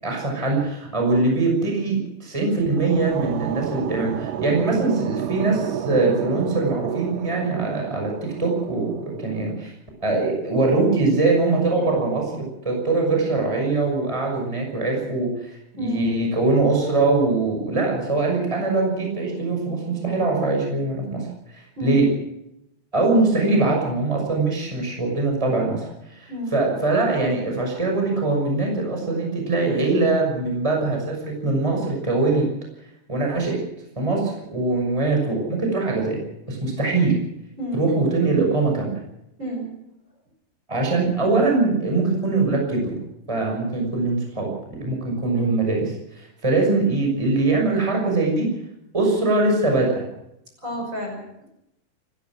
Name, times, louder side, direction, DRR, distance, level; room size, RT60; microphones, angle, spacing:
voice 1, 0.0-8.1 8.4-9.7 10.0-21.3 21.5-22.1 22.9-32.4 33.1-33.6 34.0-36.2 36.5-37.1 37.7-39.0 40.7-42.8 43.3-44.5 44.8-48.5 48.9-50.0, right 3 dB, 5° right, 0 dB, 5.8 m, -22 dB
sound 1, 2.3-9.5, right 10 dB, 70° right, 2.1 m, -31 dB
voice 2, 15.8-16.1 21.8-22.0 26.3-26.6 37.6-37.8 39.4-39.7 45.4-45.6 50.6-51.2, equal, 25° right, 1 dB, 6.2 m, -30 dB
29.5 x 14.5 x 6.3 m, 0.83 s
omnidirectional pair, 4.5 m